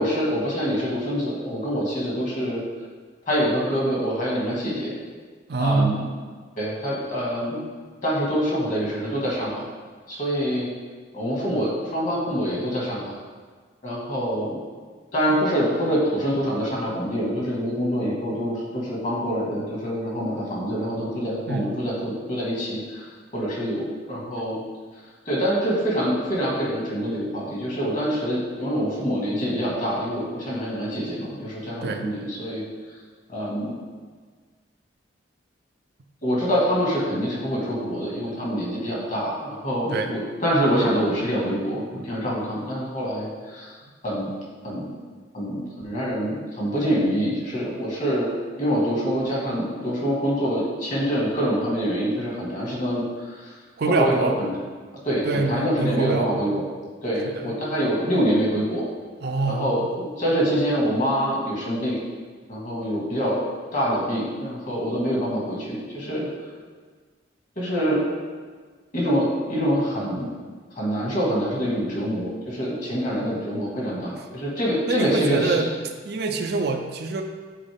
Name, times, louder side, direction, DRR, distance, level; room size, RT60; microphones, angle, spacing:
voice 1, 0.0-2.6 3.3-4.9 5.6-6.0 6.6-7.7 8.0-9.6 10.1-10.7 11.1-13.0 13.8-14.6 15.1-23.1 23.3-24.6 25.3-32.6 33.3-33.7 36.2-43.7 44.0-44.3 44.6-44.9 45.3-48.3 48.6-53.5 53.9-54.5 55.0-56.6 57.0-58.9 59.5-62.0 62.5-63.4 63.7-66.3 67.6-68.0 68.9-70.3 70.8-75.5, equal, 40° left, -4 dB, 1.7 m, -25 dB
voice 2, 5.5-6.1 21.5-21.7 31.8-32.1 39.9-40.1 53.8-54.4 55.2-56.6 57.2-57.5 59.2-59.9 73.1-73.3 74.9-75.7 76.1-77.2, right 3 dB, 55° right, 4 dB, 0.5 m, -25 dB
7.5 x 4.3 x 3.5 m, 1.5 s
head